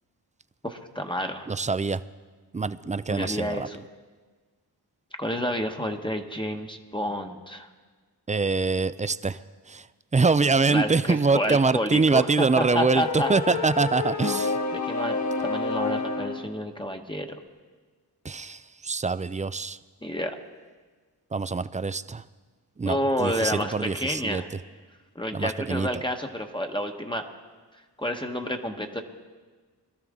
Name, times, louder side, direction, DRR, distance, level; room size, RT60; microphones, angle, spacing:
voice 1, 0.6-1.5 3.1-3.8 5.2-7.7 10.7-13.7 14.7-17.3 20.0-20.4 22.8-24.5 25.1-27.2 28.0-29.0, equal, 10° left, 4 dB, 1.1 m, -30 dB
voice 2, 1.5-2.0 2.5-3.7 8.3-9.4 9.7-9.9 10.1-14.6 18.2-19.8 21.3-22.2 22.8-24.4 25.3-25.9, right 4 dB, 20° right, 15 dB, 0.4 m, -24 dB
sound 1, 12.4-16.5, left 4 dB, 45° left, 1.6 m, -29 dB
21.5 x 12.5 x 3.7 m, 1.4 s
cardioid pair, 50°, 41 cm